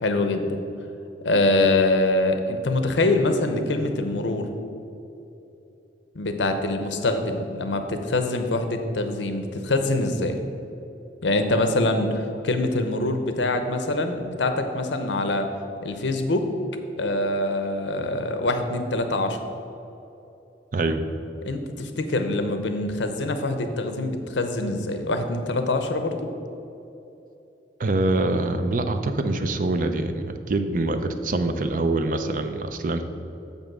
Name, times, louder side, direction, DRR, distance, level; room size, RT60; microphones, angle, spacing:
voice 1, 0.0-0.5 1.2-4.5 6.1-10.4 11.2-15.5 15.8-16.5 17.0-19.4 21.4-26.3, left 2 dB, 90° left, 7 dB, 0.7 m, -24 dB
voice 2, 27.8-33.0, right 2 dB, 45° right, 8 dB, 0.5 m, -24 dB
6.8 x 5.4 x 6.1 m, 2.9 s
head